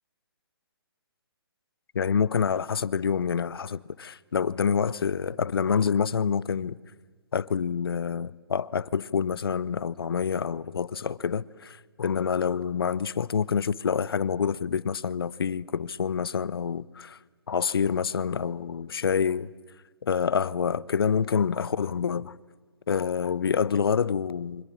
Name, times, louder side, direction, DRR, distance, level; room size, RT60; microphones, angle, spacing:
voice 1, 1.9-6.8 7.3-17.2 17.5-19.5 20.0-22.3 22.9-24.6, left 6 dB, 65° left, 0.8 m, -27 dB
28.5 x 25.5 x 7.4 m
figure-of-eight pair, 140°, 13 cm